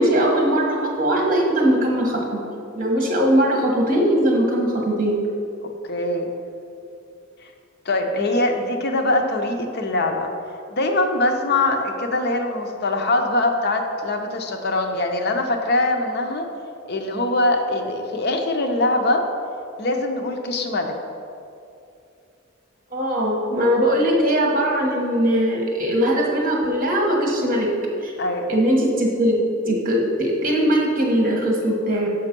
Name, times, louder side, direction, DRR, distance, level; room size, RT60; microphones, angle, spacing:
voice 1, 0.0-2.4 2.7-5.2 22.9-27.7 28.0-28.1 28.5-29.4 29.7-32.1, equal, 45° right, -1 dB, 1.3 m, -20 dB
voice 2, 5.6-6.3 7.4-7.5 7.8-10.3 10.7-16.5 16.9-19.2 19.8-20.9 28.2-28.5, left 2 dB, 55° left, 4 dB, 0.7 m, -22 dB
7.0 x 5.3 x 5.2 m, 2.6 s
head